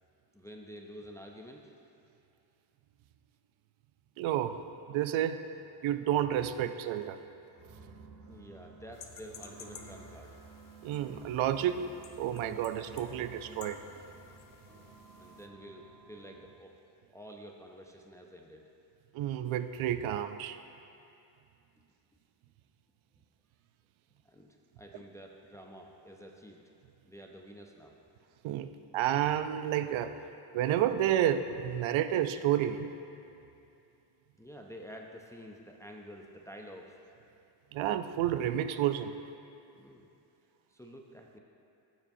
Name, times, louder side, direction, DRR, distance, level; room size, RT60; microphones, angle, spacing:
voice 1, 0.3-1.7 8.3-10.4 14.7-16.8 17.1-18.7 24.2-26.6 27.1-28.0 34.4-37.0 39.7-40.1 40.7-41.4, equal, 5° left, 1 dB, 0.4 m, -49 dB
voice 2, 4.2-4.6 4.9-5.5 5.8-7.2 10.8-13.8 19.1-20.6 28.4-30.2 30.5-32.9 37.7-39.1, right 11 dB, 80° right, 10 dB, 0.5 m, -30 dB
sound 1, 7.5-16.5, right 4 dB, 40° right, 0.8 m, -53 dB
sound 2, 8.9-15.5, left 7 dB, 45° left, 0.6 m, -53 dB
15.0 x 7.1 x 2.6 m, 2.7 s
cardioid pair, 150°, 47 cm